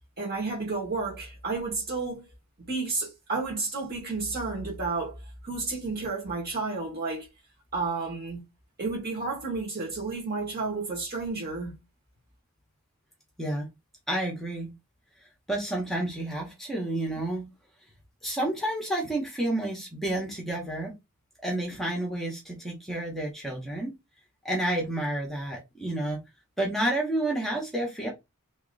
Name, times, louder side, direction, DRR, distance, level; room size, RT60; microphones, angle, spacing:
voice 1, 0.2-2.2 2.6-5.2 5.4-7.3 7.7-8.4 8.8-11.8, right 3 dB, 45° right, 1.7 m, -31 dB
voice 2, 14.1-14.7 15.5-17.5 18.2-20.9 21.4-23.9 24.4-26.2 26.6-28.1, right 1 dB, ahead, 0.9 m, -30 dB
3.1 x 2.9 x 3.8 m
head